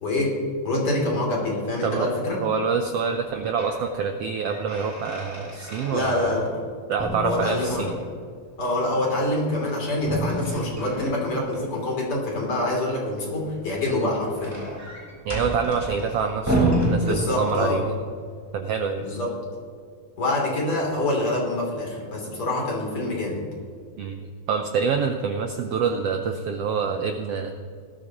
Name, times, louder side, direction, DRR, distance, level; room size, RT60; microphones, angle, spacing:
voice 1, 0.0-0.4 0.6-2.4 5.9-6.5 7.2-7.9 8.6-14.6 17.0-17.8 19.0-19.3 20.2-23.4, left 1 dB, 45° left, -3 dB, 4.0 m, -26 dB
voice 2, 2.4-6.3 6.9-7.9 15.2-18.0 18.5-19.0 24.0-24.2 24.5-27.5, right 6 dB, 70° right, 5 dB, 1.5 m, -26 dB
sound 1, 3.2-3.8 4.2-6.7 7.0-8.2 10.0-11.6 13.6-17.8, right 1 dB, 5° right, 3.4 m, -29 dB
19.0 x 14.0 x 3.0 m, 2.1 s
omnidirectional pair, 3.5 m